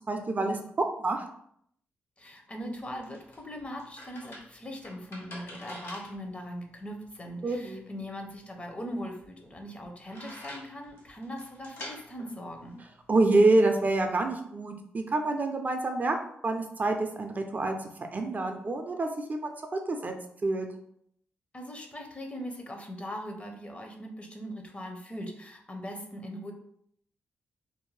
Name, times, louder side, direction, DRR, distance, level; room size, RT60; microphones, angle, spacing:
voice 1, 0.1-0.6 1.0-1.3 7.4-7.8 13.1-16.2 16.4-20.1 20.4-20.7, right 2 dB, 40° right, 4 dB, 0.4 m, -27 dB
voice 2, 2.2-12.8 21.5-26.5, equal, 25° left, 3 dB, 0.6 m, -40 dB
sound 1, 2.6-13.4, left 1 dB, 60° left, 1.0 m, -48 dB
2.6 x 2.1 x 3.1 m, 0.69 s
supercardioid pair, 60°, 5 cm